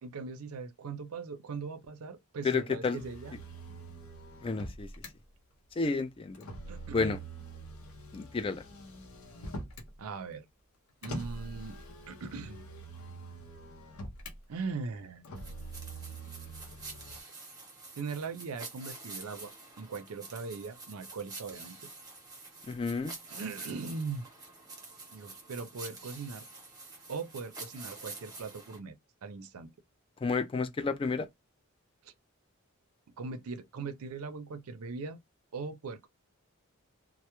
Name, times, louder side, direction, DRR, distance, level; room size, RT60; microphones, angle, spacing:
voice 1, 0.0-3.3 6.7-7.1 10.0-10.5 11.0-11.8 12.1-12.7 14.5-15.2 17.1-17.3 17.9-21.8 23.3-24.2 25.1-26.4 27.1-29.0 29.2-29.7 32.0-32.1 33.2-35.2 35.5-36.1, right 4 dB, 85° right, 0.5 m, -40 dB
voice 2, 2.4-3.0 4.4-4.9 5.8-6.4 6.9-7.2 8.1-8.6 22.7-23.1 30.2-31.3, left 4 dB, 25° left, 0.3 m, -30 dB
Motor vehicle (road), 3.0-5.1 6.3-9.9 11.0-14.4 15.2-17.2, right 1 dB, 75° left, 0.6 m, -44 dB
sound 1, 15.4-28.8, right 3 dB, 20° right, 0.8 m, -47 dB
2.1 x 2.0 x 2.9 m
head